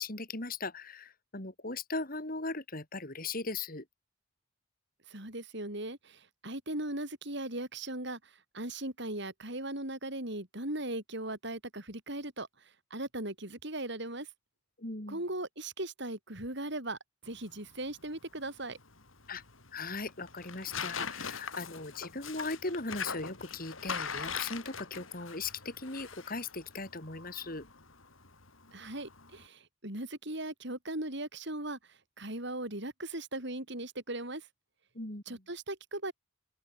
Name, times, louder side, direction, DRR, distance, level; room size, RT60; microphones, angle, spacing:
voice 1, 0.0-3.8 14.8-15.2 19.3-19.4 19.7-27.7 34.9-35.4, left 3 dB, 45° left, 4.5 m, -38 dB
voice 2, 5.1-12.5 12.9-14.3 15.1-17.0 17.2-18.8 28.7-34.5 35.3-36.1, right 1 dB, 60° right, 7.8 m, -38 dB
Tearing, 17.2-29.5, left 6 dB, 85° left, 6.0 m, -42 dB
head